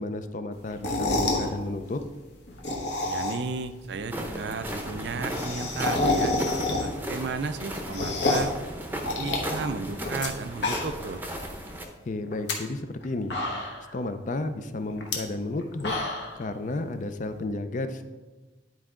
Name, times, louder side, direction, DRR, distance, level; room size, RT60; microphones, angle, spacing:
voice 1, 0.0-2.0 12.1-16.0 16.4-18.0, left 2 dB, 40° left, 9 dB, 0.4 m, -32 dB
sound 1, 0.7-1.5 2.5-3.6 3.9-4.0 4.2-4.3 4.5-4.6 4.9-7.1 7.5-8.6 9.0-10.3 10.5-11.1 11.5-11.6 12.3-12.5 13.0-13.1 13.3-13.9 15.0-15.1 15.6-16.4, left 2 dB, 65° left, 1.2 m, -28 dB
voice 2, 3.0-6.3 6.8-8.5 9.1-11.2, right 4 dB, 60° right, 11 dB, 0.4 m, -33 dB
sound 2, 4.1-11.8, equal, 10° right, 0.7 m, -35 dB
10.0 x 4.6 x 3.7 m, 1.2 s
head